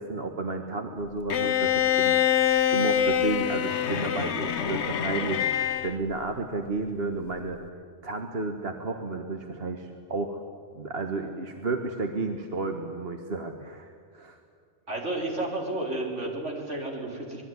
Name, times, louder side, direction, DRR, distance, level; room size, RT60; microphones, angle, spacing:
voice 1, 0.0-2.2 2.4-5.5 5.8-7.6 8.0-10.4 10.7-14.4, right 3 dB, 55° right, 5 dB, 1.6 m, -32 dB
Bowed string instrument, 1.3-6.0, left 9 dB, 70° left, 1.2 m, -25 dB
voice 2, 14.9-17.4, right 2 dB, 75° right, 0 dB, 4.7 m, -32 dB
26.0 x 21.0 x 9.6 m, 2.1 s
omnidirectional pair, 1.2 m